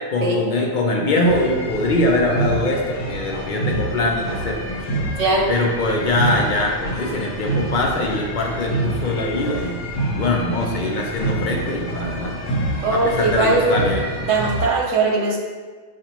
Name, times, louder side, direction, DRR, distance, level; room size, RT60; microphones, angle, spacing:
voice 1, 0.1-5.0 5.5-9.8 10.1-12.4 12.9-14.1, left 2 dB, 55° left, 0 dB, 0.6 m, -22 dB
sound 1, 1.2-14.7, right 1 dB, 85° left, 1.0 m, -27 dB
voice 2, 5.2-5.5 12.8-13.9 14.3-15.4, right 3 dB, 80° right, -1 dB, 1.1 m, -19 dB
5.4 x 2.5 x 2.9 m, 1.5 s
omnidirectional pair, 1.2 m